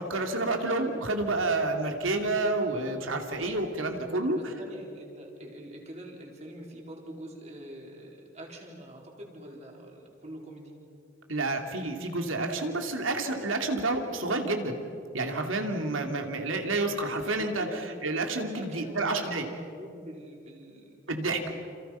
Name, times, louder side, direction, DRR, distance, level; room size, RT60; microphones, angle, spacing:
voice 1, 0.0-4.4 11.3-14.7 15.1-17.7 18.0-19.4 21.1-21.4, right 2 dB, 85° right, 4 dB, 3.0 m, -29 dB
voice 2, 4.1-10.7 17.4-18.0 18.5-21.6, equal, 35° right, 0 dB, 4.3 m, -44 dB
29.0 x 28.0 x 5.8 m, 2.7 s
head